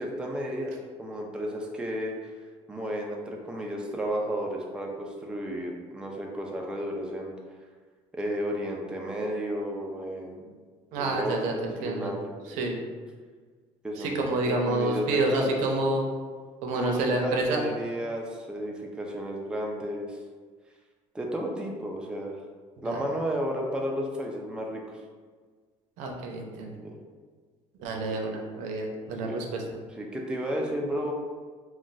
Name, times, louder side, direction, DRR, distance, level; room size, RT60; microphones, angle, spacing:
voice 1, 0.0-2.2 2.7-7.3 8.1-10.6 11.0-12.6 13.8-15.6 16.7-20.2 21.1-22.4 22.8-24.8 26.8-27.0 29.2-29.4 30.0-31.1, equal, 5° right, -1 dB, 0.4 m, -32 dB
voice 2, 10.9-11.5 11.8-12.1 12.5-12.8 14.0-16.1 16.6-17.6 22.8-23.0 26.0-26.7 27.8-29.6, right 2 dB, 90° right, 1 dB, 0.5 m, -29 dB
2.5 x 2.3 x 3.9 m, 1.5 s
cardioid pair, 125°, 13 cm